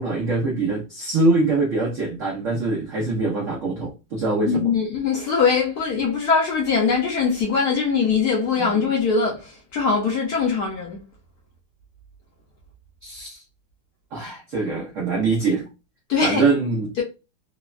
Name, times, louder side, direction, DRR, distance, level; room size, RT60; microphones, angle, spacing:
voice 1, 0.0-4.7 8.6-8.7 13.0-13.4 14.1-15.7 16.2-16.9, right 3 dB, 90° right, 0.6 m, -23 dB
voice 2, 4.5-11.0 16.1-16.4, left 5 dB, 75° left, 0.9 m, -22 dB
3.4 x 2.1 x 2.3 m
omnidirectional pair, 2.2 m